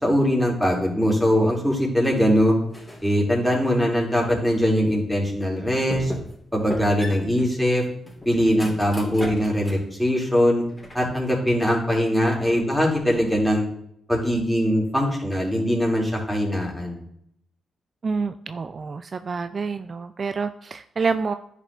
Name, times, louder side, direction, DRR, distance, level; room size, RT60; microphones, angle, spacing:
voice 1, 0.0-2.5 3.0-6.1 6.5-7.8 8.2-10.6 10.9-13.7 14.1-17.0, equal, ahead, -2 dB, 3.1 m, -21 dB
sound 1, 2.7-3.1 3.6-4.7 5.2-5.3 5.9-6.4 6.7-9.9 10.3-11.2, left 1 dB, 15° left, 2.9 m, -37 dB
voice 2, 18.0-21.3, right 4 dB, 50° right, 10 dB, 0.3 m, -27 dB
10.5 x 5.0 x 3.4 m, 0.71 s
hypercardioid pair, 40°, 0 cm